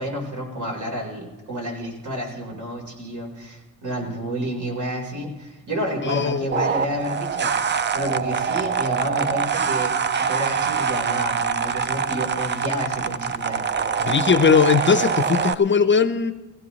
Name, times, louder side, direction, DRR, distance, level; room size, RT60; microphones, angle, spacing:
voice 1, 0.0-9.9 10.2-13.6, equal, 65° right, 0 dB, 4.1 m, -30 dB
voice 2, 6.0-6.7 14.0-16.3, left 6 dB, 35° left, 11 dB, 0.6 m, -19 dB
sound 1, 6.5-15.5, right 6 dB, 35° right, 0.5 m, -24 dB
17.5 x 16.0 x 3.1 m, 1.1 s
cardioid pair, 115°, 33 cm